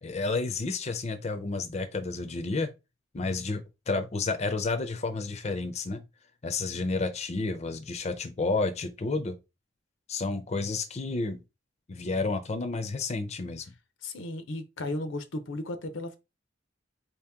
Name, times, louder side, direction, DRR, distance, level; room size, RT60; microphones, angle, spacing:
voice 1, 0.0-2.7 3.1-6.0 6.4-9.4 10.1-11.4 11.9-13.7, left 3 dB, 35° left, 0.5 m, -31 dB
voice 2, 14.0-16.2, left 2 dB, 85° left, 0.7 m, -35 dB
4.0 x 2.8 x 3.5 m
head